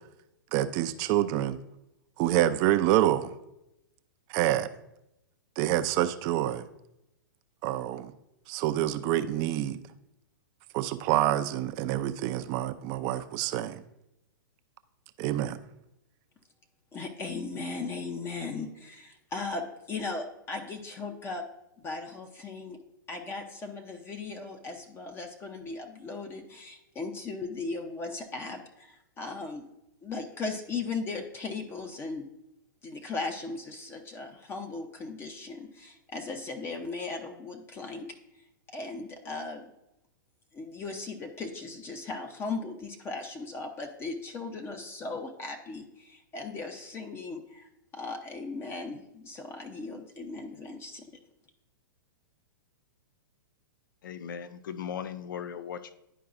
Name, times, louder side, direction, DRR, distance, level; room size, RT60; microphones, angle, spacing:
voice 1, 0.5-1.6 2.2-3.3 4.3-4.7 5.6-6.7 7.6-8.1 8.5-9.8 10.7-13.8 15.2-15.6, right 13 dB, 40° right, 0.5 m, -27 dB
voice 2, 16.9-21.5 21.8-22.8 23.1-29.7 30.0-32.3 32.8-38.1 38.7-39.7 40.5-47.7 47.9-51.1, left 3 dB, 20° left, 0.7 m, -37 dB
voice 3, 54.0-55.9, left 8 dB, 70° left, 0.5 m, -38 dB
11.0 x 4.6 x 2.5 m
hypercardioid pair, 120°, 11 cm